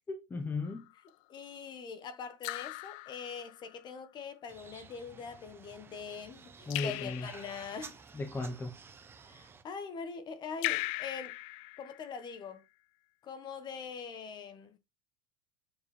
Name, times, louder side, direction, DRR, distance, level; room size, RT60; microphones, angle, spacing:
voice 1, 0.1-0.9 6.7-7.3 8.1-8.8, left 3 dB, 15° left, 1.0 m, -36 dB
Raindrop / Drip, 0.6-1.1 2.4-3.8 6.7-7.8 10.6-12.3, left 22 dB, 50° left, 0.4 m, -39 dB
voice 2, 1.3-8.0 9.3-11.4 11.8-12.6 13.2-14.8, left 5 dB, 30° left, 1.4 m, -43 dB
sound 1, 4.5-9.6, right 5 dB, 15° right, 0.9 m, -53 dB
7.7 x 7.4 x 3.4 m
supercardioid pair, 150°, 15 cm